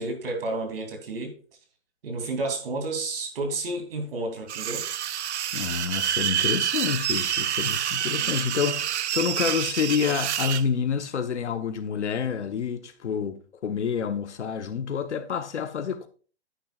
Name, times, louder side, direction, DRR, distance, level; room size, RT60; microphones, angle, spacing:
voice 1, 0.0-1.4 2.0-4.9 8.1-8.3, right 2 dB, 55° right, 2.9 m, -31 dB
sound 1, 4.5-10.6, right 10 dB, 80° right, 0.6 m, -27 dB
voice 2, 5.5-16.1, left 7 dB, 85° left, 1.2 m, -28 dB
9.9 x 9.0 x 2.4 m
hypercardioid pair, 165°, 34 cm